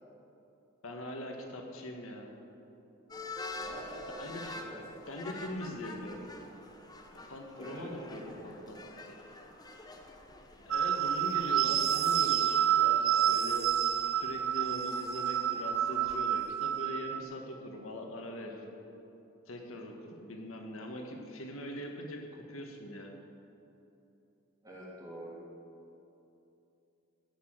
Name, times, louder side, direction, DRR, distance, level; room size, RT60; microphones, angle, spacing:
voice 1, 0.8-2.3 4.2-4.5 5.1-6.2 7.1-8.8 10.6-13.0 13.3-13.7 14.1-18.7 19.5-23.1, left 1 dB, 85° left, 2 dB, 1.6 m, -42 dB
sound 1, 3.1-16.2, left 2 dB, 20° left, 0.9 m, -47 dB
voice 2, 3.5-5.4 7.6-8.7 24.6-25.4, right 1 dB, 15° right, -6 dB, 3.0 m, -47 dB
sound 2, 10.7-17.2, right 10 dB, 80° right, 0.5 m, -29 dB
15.5 x 6.0 x 7.8 m, 2.9 s
head